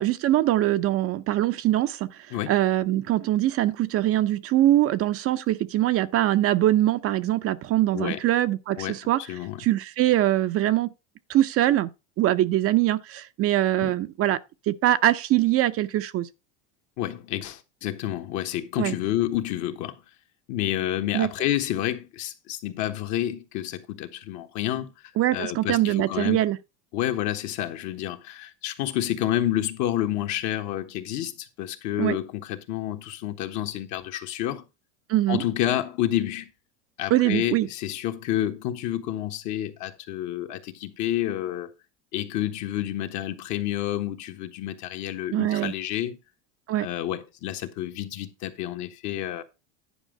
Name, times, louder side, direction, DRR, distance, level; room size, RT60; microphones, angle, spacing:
voice 1, 0.0-2.1 2.5-9.2 9.6-10.9 11.3-11.9 12.2-14.4 14.7-16.3 18.8-18.9 21.1-21.3 25.2-26.6 32.0-32.2 35.1-35.4 37.1-37.7 45.3-45.7 46.7-46.9, right 14 dB, 40° right, 0.6 m, -23 dB
voice 2, 9.3-9.6 13.8-13.9 17.0-20.0 20.5-26.4 26.9-34.6 35.3-36.5 37.0-41.7 42.1-46.2 46.8-49.4, left 12 dB, 55° left, 1.4 m, -29 dB
10.5 x 5.2 x 5.0 m
supercardioid pair, 105°, 35 cm